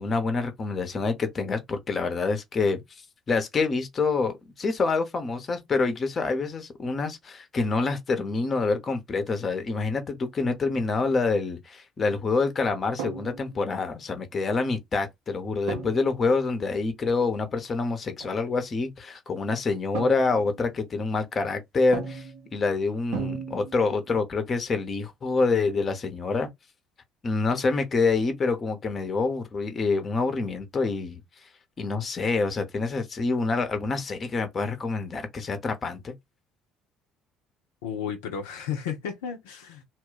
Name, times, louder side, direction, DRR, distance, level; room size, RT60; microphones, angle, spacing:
voice 1, 0.0-2.8 3.3-22.3 22.5-26.5 27.2-31.2 31.8-36.1, left 4 dB, 35° left, 0.7 m, -26 dB
sound 1, 13.0-13.7 15.7-16.3 18.2-18.4 19.9-20.7 21.9-22.6 23.1-24.1, right 6 dB, 65° right, 0.7 m, -36 dB
voice 2, 37.8-39.8, left 7 dB, 70° left, 0.5 m, -33 dB
2.3 x 2.1 x 3.8 m
figure-of-eight pair, 55°, 0 cm